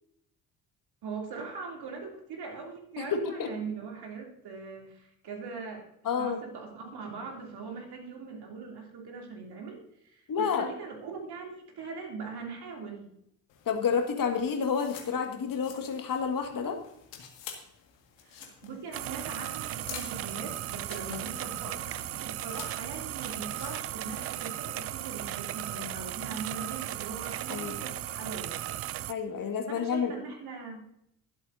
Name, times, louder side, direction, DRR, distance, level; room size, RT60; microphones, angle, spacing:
voice 1, 1.0-5.8 6.2-13.1 18.2-28.8 29.7-30.8, right 4 dB, 50° right, 1 dB, 3.0 m, -41 dB
voice 2, 3.0-3.5 6.0-6.4 10.3-10.7 13.7-16.8 27.5-27.7 29.1-30.1, left 6 dB, 40° left, 4 dB, 1.9 m, -29 dB
sound 1, 13.5-24.8, left 8 dB, 60° left, 1.9 m, -49 dB
sound 2, 18.9-29.1, right 13 dB, 30° right, 0.4 m, -36 dB
22.0 x 8.1 x 2.7 m, 0.75 s
figure-of-eight pair, 45°, 50 cm